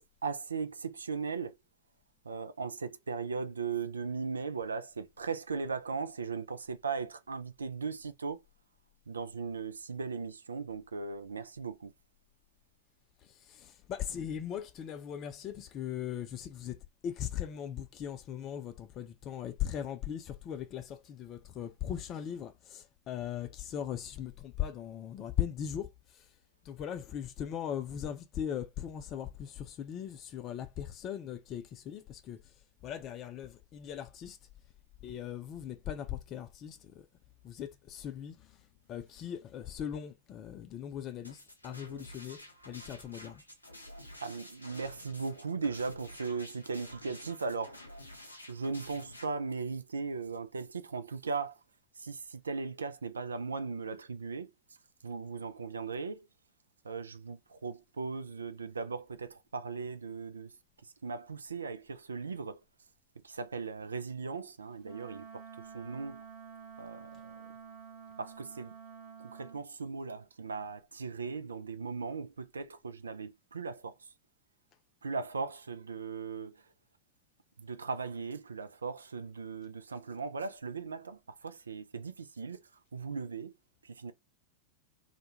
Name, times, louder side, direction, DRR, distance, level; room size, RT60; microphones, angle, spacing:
voice 1, 0.0-1.6 2.2-8.4 9.1-11.9 44.2-47.8 48.5-51.6 52.0-54.5 55.0-56.3 56.8-60.6 60.8-62.6 63.2-66.2 66.8-67.5 68.2-68.7 69.2-74.1 75.0-76.6 77.6-82.6 82.9-83.5 83.8-84.1, right 4 dB, 75° right, 0.3 m, -38 dB
voice 2, 13.2-16.8 17.0-26.3 26.6-32.5 32.8-34.4 35.0-37.1 37.4-43.4, left 10 dB, 35° left, 0.5 m, -39 dB
sound 1, 41.2-49.3, left 1 dB, 85° left, 0.6 m, -50 dB
Wind instrument woodwind instrument, 64.8-69.6, right 6 dB, 40° right, 1.0 m, -49 dB
2.2 x 2.1 x 2.8 m
figure-of-eight pair, 90°, 0 cm